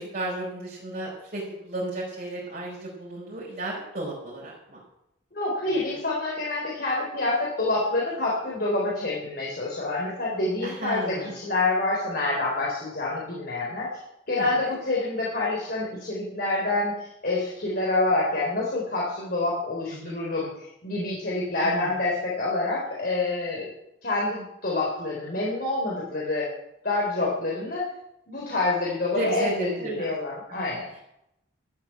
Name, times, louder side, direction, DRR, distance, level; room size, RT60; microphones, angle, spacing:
voice 1, 0.0-4.8 5.7-6.0 10.6-11.4 14.4-14.7 20.0-20.2 21.6-21.9 29.1-30.1 30.6-30.7, right 1 dB, 45° right, -5 dB, 4.7 m, -33 dB
voice 2, 5.3-13.9 14.3-23.7 24.0-26.5 26.8-27.9 28.3-30.9, left 2 dB, 50° left, -4 dB, 4.0 m, -27 dB
13.5 x 8.4 x 8.7 m, 0.82 s
head